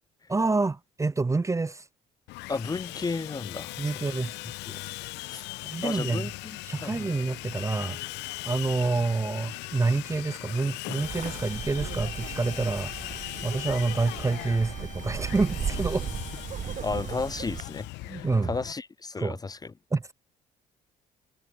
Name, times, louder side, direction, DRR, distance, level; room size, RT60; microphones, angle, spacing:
voice 1, 0.3-1.8 3.8-4.3 5.6-6.3 6.7-8.0 8.4-12.9 13.4-16.1 18.0-18.5 19.2-19.4 19.9-20.1, right 3 dB, 15° right, 0.7 m, -27 dB
Sawing, 2.3-18.7, left 21 dB, 75° left, 1.0 m, -39 dB
voice 2, 2.5-3.7 4.7-4.8 5.3-5.4 5.8-7.1 16.8-19.7, left 4 dB, 20° left, 0.7 m, -33 dB
sound 1, 10.9-16.7, left 8 dB, 45° left, 1.1 m, -48 dB
Wind, 11.0-17.6, right 8 dB, 45° right, 1.1 m, -36 dB
supercardioid pair, 70°, 18 cm